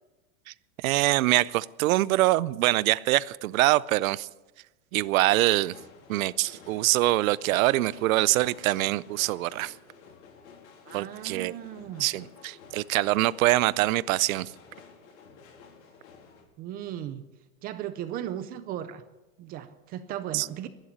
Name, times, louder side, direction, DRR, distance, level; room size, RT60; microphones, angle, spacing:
voice 1, 0.8-4.3 4.9-5.7 6.1-9.7 10.9-11.5 12.0-14.5 20.3-20.5, right 17 dB, 70° right, 21 dB, 0.6 m, -24 dB
sound 1, 5.2-16.4, left 5 dB, 70° left, 3.8 m, -51 dB
voice 2, 10.8-12.1 16.6-17.2 17.6-19.0 19.4-20.7, right 11 dB, 20° right, 12 dB, 0.4 m, -36 dB
11.5 x 11.5 x 9.9 m, 1.1 s
supercardioid pair, 150°, 42 cm